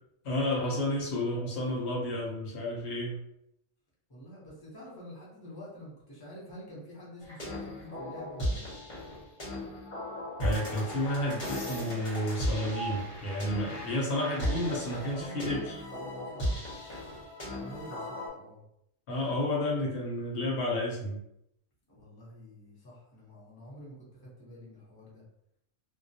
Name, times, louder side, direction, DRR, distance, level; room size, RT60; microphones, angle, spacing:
voice 1, 0.2-3.2 10.4-15.8 19.1-21.2, left 1 dB, 65° left, -3 dB, 1.0 m, -31 dB
voice 2, 4.1-8.7 15.0-16.6 17.5-18.6 21.9-25.2, equal, 25° left, -6 dB, 0.7 m, -48 dB
sound 1, 7.2-18.3, equal, 40° left, 0.9 m, -36 dB
2.2 x 2.2 x 2.6 m, 0.78 s
omnidirectional pair, 1.3 m